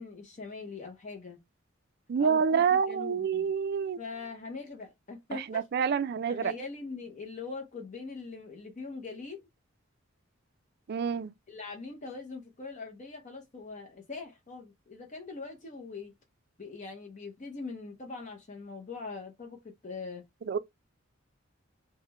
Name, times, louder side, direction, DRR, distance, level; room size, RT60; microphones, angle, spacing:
voice 1, 0.0-1.4 2.2-3.5 4.0-9.5 11.5-16.1 16.6-20.2, left 4 dB, 40° left, 0.7 m, -42 dB
voice 2, 2.1-4.0 5.3-6.5 10.9-11.3 20.5-20.6, right 6 dB, 55° right, 0.4 m, -27 dB
3.6 x 2.1 x 4.2 m
head